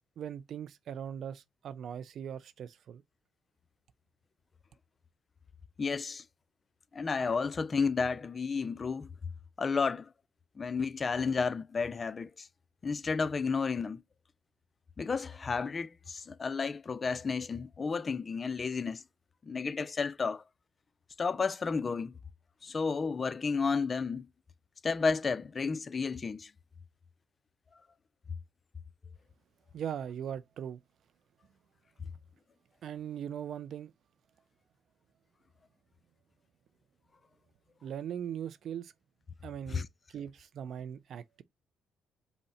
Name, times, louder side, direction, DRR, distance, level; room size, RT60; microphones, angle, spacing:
voice 1, 0.2-3.0 29.7-30.8 32.8-33.9 37.8-38.9 39.4-41.4, right 9 dB, 65° right, 0.4 m, -40 dB
voice 2, 5.8-6.2 6.9-9.1 9.6-10.1 10.6-12.5 12.8-14.0 15.0-19.0 19.4-20.4 21.2-22.1 22.6-24.3 24.8-26.5 39.7-39.9, left 5 dB, 35° left, 0.4 m, -32 dB
5.4 x 2.1 x 4.2 m
cardioid pair, 80°, 0 cm